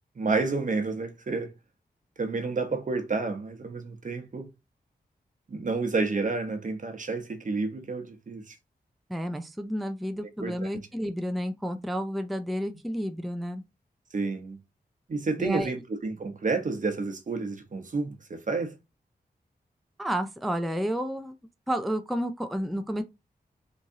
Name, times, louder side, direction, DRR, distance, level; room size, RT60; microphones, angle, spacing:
voice 1, 0.2-1.5 2.2-4.5 5.5-8.5 10.4-10.5 14.1-14.6 15.1-18.7, right 3 dB, 50° right, 0.9 m, -30 dB
voice 2, 9.1-13.6 15.4-15.7 20.0-21.4 21.7-23.0, equal, ahead, 0.4 m, -31 dB
3.5 x 3.1 x 2.7 m
cardioid pair, 65°, 17 cm